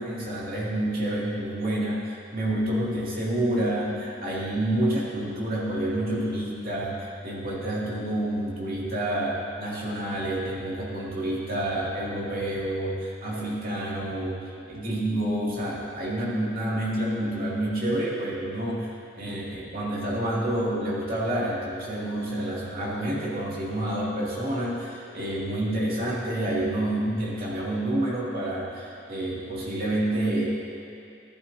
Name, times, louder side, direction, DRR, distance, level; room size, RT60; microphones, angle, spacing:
voice 1, 0.0-14.4 14.7-30.5, right 1 dB, 50° right, -6 dB, 2.5 m, -28 dB
14.0 x 11.0 x 2.8 m, 2.6 s
head